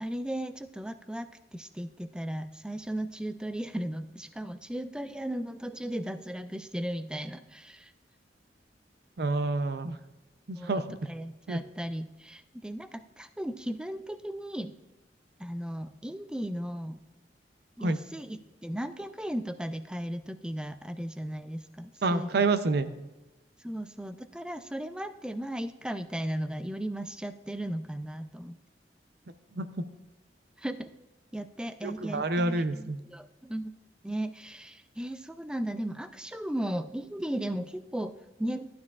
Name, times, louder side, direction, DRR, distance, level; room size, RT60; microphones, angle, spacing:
voice 1, 0.0-7.9 10.6-10.8 11.1-14.7 15.4-17.0 17.8-18.4 18.6-22.4 23.6-28.6 30.6-30.9 31.3-33.7 34.0-38.7, right 1 dB, 5° right, 10 dB, 0.3 m, -36 dB
voice 2, 9.2-10.0 10.5-10.9 11.5-11.6 17.8-18.0 22.0-22.9 29.6-29.8 31.8-33.0, right 3 dB, 60° right, 11 dB, 0.6 m, -28 dB
14.0 x 9.4 x 2.4 m, 1.0 s
head